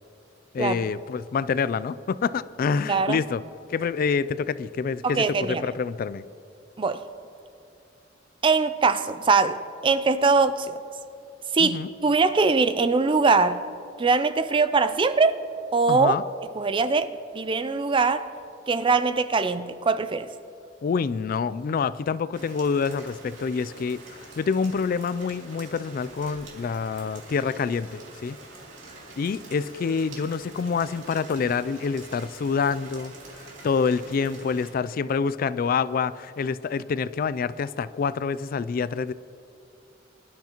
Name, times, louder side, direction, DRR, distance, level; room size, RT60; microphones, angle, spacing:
voice 1, 0.5-3.4 3.7-6.2 11.6-11.9 15.9-16.2 20.8-28.4 29.2-39.1, left 5 dB, 50° left, 16 dB, 0.3 m, -27 dB
voice 2, 2.9-3.2 5.0-5.7 6.8-7.1 8.4-10.8 11.5-13.6 14.0-15.4 15.7-16.2 16.6-18.3 18.7-20.3, right 4 dB, 25° right, 12 dB, 0.4 m, -22 dB
Rain, 22.3-34.7, right 2 dB, 80° right, 2.7 m, -46 dB
25.0 x 11.5 x 3.0 m, 2.7 s
head